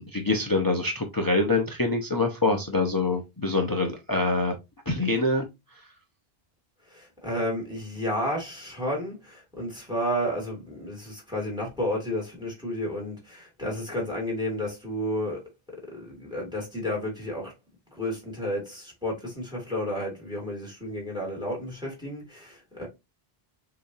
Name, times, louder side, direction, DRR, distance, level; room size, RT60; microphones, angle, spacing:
voice 1, 0.0-4.5 4.9-5.5, left 2 dB, 25° left, 0.7 m, -25 dB
voice 2, 6.9-15.4 15.7-17.5 17.9-22.9, equal, 5° right, 2.2 m, -32 dB
6.8 x 3.0 x 2.6 m
omnidirectional pair, 1.0 m